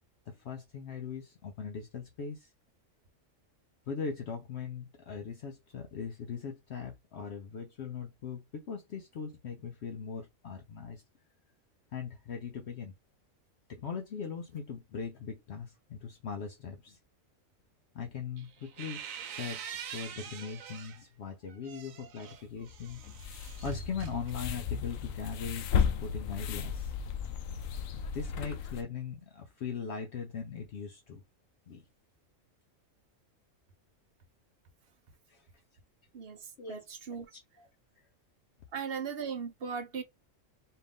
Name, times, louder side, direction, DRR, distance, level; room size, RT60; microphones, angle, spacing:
voice 1, 0.3-2.5 3.9-11.0 11.9-12.9 13.7-17.0 17.9-26.9 27.9-31.2 31.7-31.8 35.3-35.5 36.6-36.8 37.6-37.7, left 6 dB, 65° left, 0.9 m, -40 dB
sound 1, 18.4-21.0 21.5-24.8, right 7 dB, 85° right, 1.1 m, -44 dB
sound 2, 22.7-28.8, left 7 dB, 90° left, 1.0 m, -34 dB
voice 2, 36.1-37.3 38.7-40.0, right 6 dB, 55° right, 0.9 m, -38 dB
4.3 x 2.5 x 3.5 m
omnidirectional pair, 1.4 m